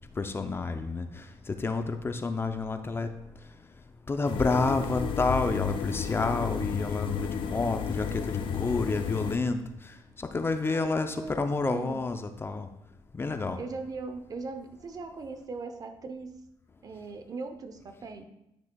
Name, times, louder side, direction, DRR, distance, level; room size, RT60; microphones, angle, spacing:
voice 1, 0.2-3.1 4.1-12.7 13.1-13.6, left 3 dB, 25° left, 8 dB, 0.5 m, -29 dB
sound 1, 4.2-9.4, left 7 dB, 70° left, 0.6 m, -32 dB
voice 2, 10.7-12.0 13.6-16.4 16.8-18.2, right 4 dB, 45° right, 8 dB, 0.8 m, -39 dB
10.0 x 6.1 x 2.3 m, 0.85 s
cardioid pair, 90°, 9 cm